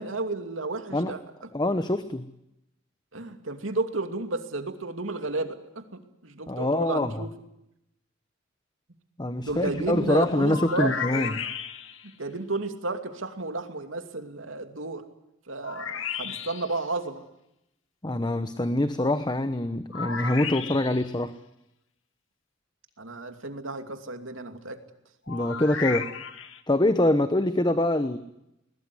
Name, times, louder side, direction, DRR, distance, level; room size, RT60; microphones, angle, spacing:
voice 1, 0.0-1.5 3.1-7.3 9.4-11.3 12.2-15.0 15.5-17.2 23.0-24.8, right 2 dB, 85° right, 7 dB, 2.7 m, -32 dB
voice 2, 1.5-2.3 6.5-7.2 9.2-11.4 18.0-21.3 25.3-26.1 26.7-28.2, left 1 dB, 20° left, 11 dB, 1.0 m, -25 dB
sound 1, 9.4-11.8, equal, ahead, 6.2 m, -51 dB
sound 2, 10.5-12.1 15.6-16.8 19.9-21.1 25.3-26.6, left 7 dB, 85° left, 2.0 m, -34 dB
21.0 x 20.5 x 9.8 m, 0.85 s
head